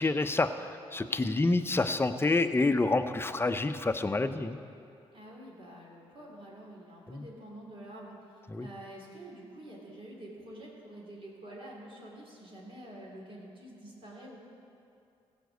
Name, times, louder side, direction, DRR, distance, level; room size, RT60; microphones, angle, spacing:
voice 1, 0.0-4.6 7.1-7.3 8.5-8.7, left 3 dB, 20° left, 9 dB, 0.7 m, -28 dB
voice 2, 5.1-8.2 8.6-14.4, right 1 dB, 50° right, -3 dB, 3.6 m, -47 dB
15.0 x 5.3 x 8.1 m, 2.6 s
supercardioid pair, 55°, 12 cm